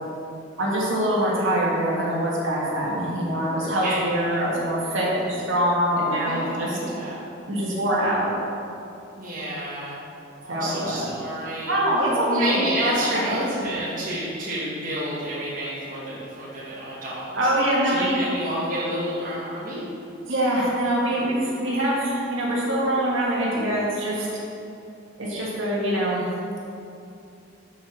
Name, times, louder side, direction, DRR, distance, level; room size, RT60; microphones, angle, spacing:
voice 1, 0.6-6.8 7.5-8.3 10.5-11.1 11.6-12.6 13.1-13.3 17.3-18.2 20.3-24.4 25.2-26.2, right 1 dB, 70° right, -5 dB, 1.7 m, -24 dB
voice 2, 6.2-7.2 9.2-10.0 10.4-11.8 12.3-17.5 17.8-19.9, right 1 dB, 45° right, -8 dB, 1.2 m, -29 dB
6.0 x 4.6 x 6.1 m, 2.7 s
head